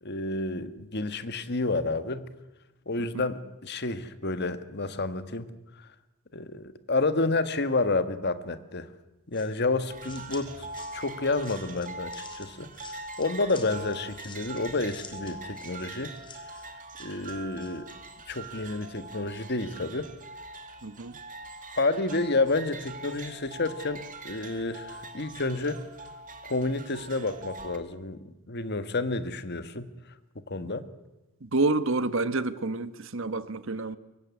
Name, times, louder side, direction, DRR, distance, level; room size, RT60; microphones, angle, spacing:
voice 1, 0.0-2.3 2.9-5.5 5.8-5.9 6.3-8.9 9.3-16.1 17.0-17.9 18.3-20.1 21.7-25.8 26.4-28.2 28.5-29.9 30.5-30.9, left 3 dB, 50° left, 1.6 m, -30 dB
sound 1, 9.3-18.5, left 4 dB, 20° left, 3.7 m, -50 dB
sound 2, 9.9-27.8, right 3 dB, 40° right, 2.4 m, -43 dB
voice 2, 20.8-21.2 30.6-30.7 31.4-34.0, right 3 dB, 60° right, 1.3 m, -28 dB
24.0 x 23.0 x 9.8 m
head